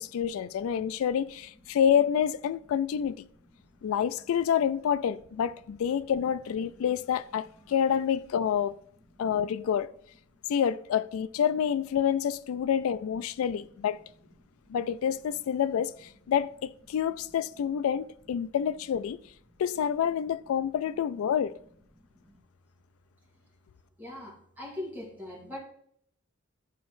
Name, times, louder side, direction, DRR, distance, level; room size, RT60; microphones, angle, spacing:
voice 1, 0.0-3.3 3.8-8.7 9.2-9.9 10.5-14.0 14.7-19.2 19.6-21.5, left 8 dB, 70° left, 0.3 m, -28 dB
voice 2, 24.0-25.6, left 1 dB, 10° right, 2.3 m, -40 dB
11.0 x 4.1 x 3.1 m
head